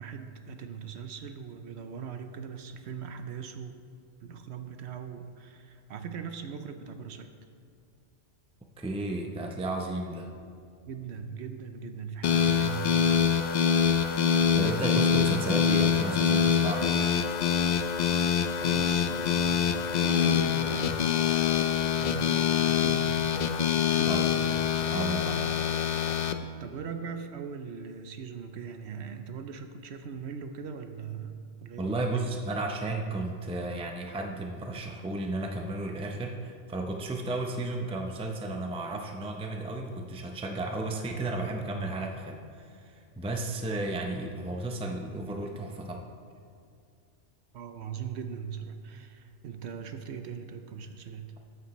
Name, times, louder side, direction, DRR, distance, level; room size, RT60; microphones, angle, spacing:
voice 1, 0.0-3.8 4.2-7.3 10.9-13.3 18.6-21.1 21.9-23.4 23.8-24.6 26.6-32.0 47.5-51.3, right 7 dB, 70° right, 7 dB, 0.9 m, -40 dB
voice 2, 8.8-10.3 14.5-17.1 24.0-24.3 24.9-25.5 31.8-46.0, right 2 dB, 5° right, 3 dB, 0.5 m, -33 dB
sound 1, 12.2-26.3, left 7 dB, 65° left, 0.4 m, -25 dB
13.5 x 7.8 x 3.1 m, 2.3 s
omnidirectional pair, 1.2 m